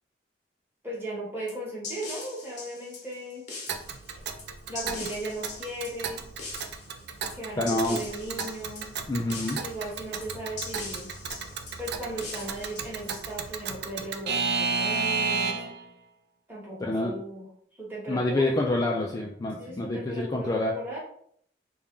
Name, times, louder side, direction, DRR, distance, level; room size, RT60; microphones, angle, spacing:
voice 1, 0.8-3.4 4.7-6.2 7.3-8.9 9.6-11.1 11.8-15.6 16.5-17.5 17.8-18.5 19.6-21.0, right 1 dB, 10° right, -5 dB, 1.2 m, -37 dB
sound 1, 1.5-13.7, left 4 dB, 45° left, 1.0 m, -42 dB
Alarm / Clock, 3.7-15.8, right 5 dB, 65° right, 0.4 m, -33 dB
voice 2, 7.6-8.0 9.1-9.6 16.8-17.2 18.1-20.7, left 2 dB, 20° left, -1 dB, 0.3 m, -27 dB
3.5 x 2.3 x 3.6 m, 0.65 s
head